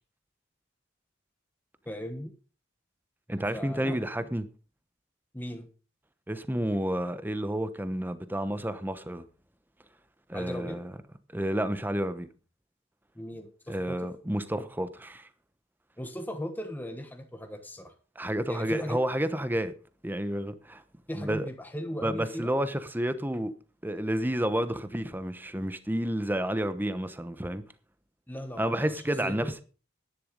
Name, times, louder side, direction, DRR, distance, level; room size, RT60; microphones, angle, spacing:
voice 1, 1.8-2.3 3.5-4.3 5.3-5.7 10.3-10.8 13.1-14.1 16.0-17.9 18.5-19.0 21.1-22.5 28.3-29.0 29.2-29.5, equal, 10° left, 1.3 m, -37 dB
voice 2, 3.3-4.5 6.3-9.2 10.3-10.9 11.3-12.3 13.7-15.3 18.2-19.7 20.0-20.8 21.1-21.5 22.0-23.5 23.8-27.6 28.6-29.6, right 1 dB, 10° right, 1.0 m, -30 dB
11.0 x 10.5 x 5.2 m
head